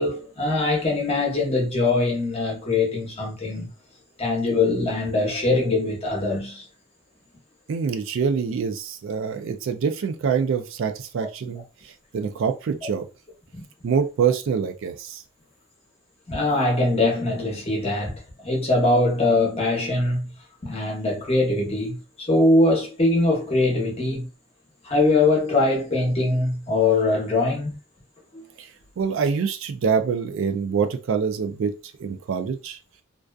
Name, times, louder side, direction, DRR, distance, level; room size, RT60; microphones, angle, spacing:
voice 1, 0.0-3.7 4.2-6.6 13.5-13.6 16.3-20.3 20.6-24.3 24.8-27.7 28.3-28.4, left 2 dB, 30° left, 0.8 m, -22 dB
voice 2, 7.7-13.1 13.8-15.2 28.6-28.7 29.0-31.7 32.0-32.8, right 6 dB, 60° right, 0.3 m, -25 dB
2.5 x 2.2 x 2.3 m
head